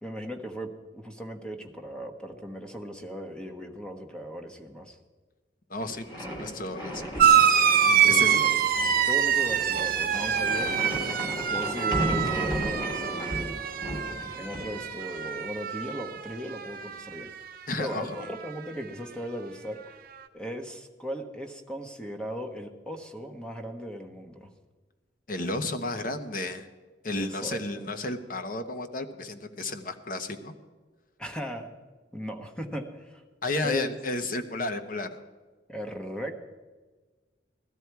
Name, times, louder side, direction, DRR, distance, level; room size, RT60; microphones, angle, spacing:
voice 1, 0.0-5.0 7.9-8.8 9.0-13.5 14.3-17.3 17.8-20.0 20.3-24.5 27.2-27.9 31.2-31.7 32.1-33.2 33.6-33.9 35.7-36.5, equal, 5° left, 4 dB, 1.2 m, -37 dB
voice 2, 5.7-8.4 17.7-18.3 25.3-26.7 27.0-30.5 33.4-35.2, left 2 dB, 50° left, 8 dB, 1.0 m, -33 dB
sound 1, 5.8-15.2, equal, 25° left, 3.9 m, -35 dB
sound 2, 7.2-16.2 16.5-17.2 18.3-18.4, right 8 dB, 55° right, 1.0 m, -25 dB
17.0 x 12.5 x 4.7 m, 1.3 s
head